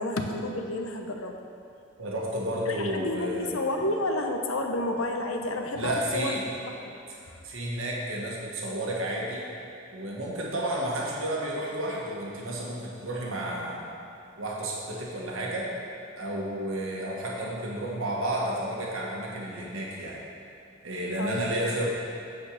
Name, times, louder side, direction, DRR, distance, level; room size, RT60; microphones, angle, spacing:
voice 1, 0.0-1.4 2.7-6.4 6.8-7.0 7.3-7.4 21.2-21.7, left 1 dB, 85° left, 3 dB, 0.8 m, -30 dB
voice 2, 2.0-3.5 5.7-6.4 7.4-9.4 9.9-13.9 14.4-15.7 16.2-20.2 20.8-21.9, right 1 dB, 75° right, -3 dB, 1.3 m, -31 dB
8.8 x 4.4 x 6.4 m, 2.6 s
head